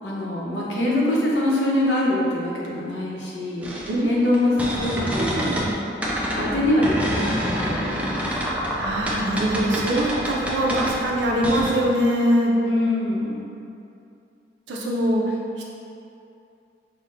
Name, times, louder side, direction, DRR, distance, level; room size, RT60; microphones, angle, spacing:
voice 1, 0.0-3.7 4.0-5.6 6.3-8.5 12.6-13.5, left 1 dB, 80° left, -5 dB, 0.7 m, -24 dB
sound 1, 3.6-5.7 6.0-11.7, equal, 10° right, 0.4 m, -27 dB
voice 2, 3.9-4.8 5.2-5.7 8.8-12.5 14.7-15.3, right 1 dB, 85° right, -2 dB, 0.5 m, -23 dB
5.5 x 2.1 x 2.5 m, 2.6 s
head